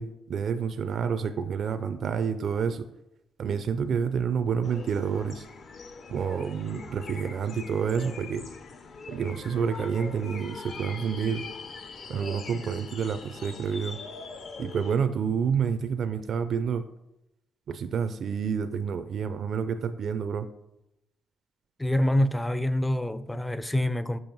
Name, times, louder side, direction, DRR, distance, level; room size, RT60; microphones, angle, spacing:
voice 1, 0.0-2.9 3.4-5.5 6.1-8.5 9.1-11.5 12.1-14.0 14.6-16.8 17.7-20.5, right 6 dB, 60° right, 0.4 m, -29 dB
sound 1, 4.6-15.0, left 4 dB, 55° left, 0.7 m, -42 dB
voice 2, 21.8-24.2, left 1 dB, 10° left, 0.4 m, -26 dB
5.5 x 5.0 x 4.5 m
cardioid pair, 90°, 0 cm